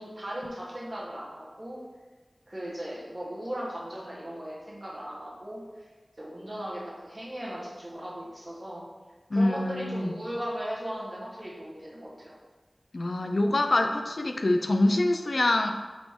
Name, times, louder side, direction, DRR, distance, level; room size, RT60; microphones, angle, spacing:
voice 1, 0.0-1.8 2.5-5.9 6.2-8.8 9.3-12.3, equal, 35° right, -6 dB, 1.2 m, -37 dB
voice 2, 9.3-10.1 12.9-15.7, left 2 dB, 65° left, 5 dB, 0.3 m, -25 dB
4.0 x 2.9 x 3.5 m, 1.3 s
wide cardioid pair, 55°, 0 cm